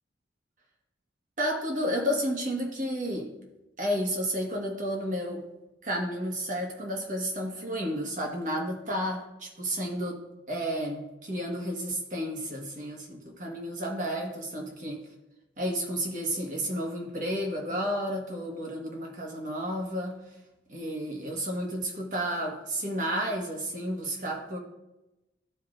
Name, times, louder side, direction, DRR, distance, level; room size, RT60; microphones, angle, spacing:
voice 1, 1.4-3.3 3.8-5.4 5.8-10.2 10.5-15.1 15.6-20.2 20.7-24.6, equal, 45° right, 0 dB, 1.4 m, -31 dB
12.5 x 4.6 x 2.5 m, 0.97 s
head